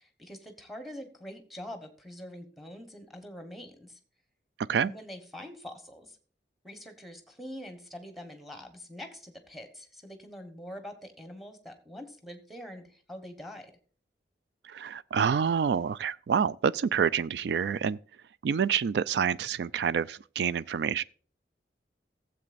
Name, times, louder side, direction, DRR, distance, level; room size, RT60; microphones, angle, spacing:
voice 1, 0.0-4.0 4.8-6.2 6.6-13.7, equal, ahead, 1.2 m, -44 dB
voice 2, 14.7-18.0 18.4-21.0, right 7 dB, 70° right, 0.3 m, -27 dB
15.0 x 7.7 x 2.5 m
head